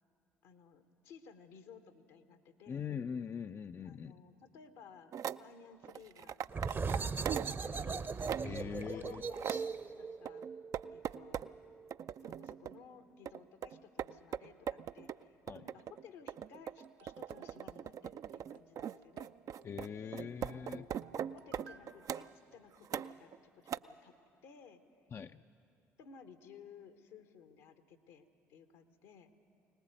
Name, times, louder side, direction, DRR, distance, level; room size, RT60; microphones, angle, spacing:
voice 1, 0.4-2.9 3.8-5.1 5.4-6.4 6.7-8.0 8.6-10.4 10.9-11.5 12.2-19.3 20.0-20.2 20.7-20.9 21.1-24.1 24.4-24.8 26.0-29.3, left 6 dB, 75° left, 9 dB, 1.2 m, -57 dB
voice 2, 2.7-4.2 8.4-9.2 15.5-15.7 19.6-20.8 25.1-25.4, left 7 dB, 35° left, 9 dB, 0.5 m, -42 dB
sound 1, 5.1-5.4 5.8-7.6 7.9-8.6 9.0-9.7 10.3-11.5 11.9-12.8 13.3-22.3 22.8-23.4 23.7-23.8, right 9 dB, 50° right, 0.4 m, -40 dB
sound 2, 6.5-11.9, right 4 dB, 35° right, 0.8 m, -39 dB
sound 3, 16.7-21.9, right 6 dB, 70° right, 0.9 m, -63 dB
22.0 x 19.0 x 7.8 m, 2.5 s
hypercardioid pair, 50°, 7 cm